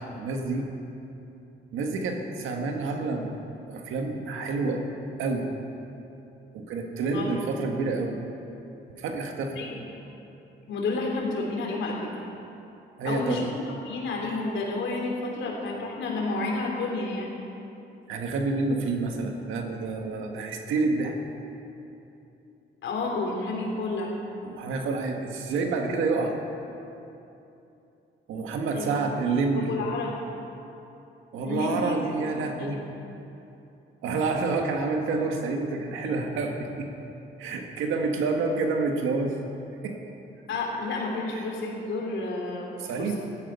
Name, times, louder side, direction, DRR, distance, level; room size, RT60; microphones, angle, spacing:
voice 1, 0.1-0.7 1.7-4.8 5.2-5.5 6.5-8.2 9.0-9.6 13.0-13.4 18.1-21.2 24.4-26.4 28.3-29.7 31.3-32.8 34.0-36.9 37.4-39.4 39.8-40.0 41.3-41.4 42.8-43.1, right 3 dB, 90° right, 3 dB, 1.7 m, -28 dB
voice 2, 10.7-12.0 13.0-13.5 13.9-17.3 22.8-24.1 28.7-28.9 29.5-30.1 31.4-32.8 40.5-42.7 43.0-43.2, left 3 dB, 75° left, -1 dB, 3.6 m, -30 dB
15.0 x 12.5 x 5.6 m, 2.9 s
cardioid pair, 90°, 20 cm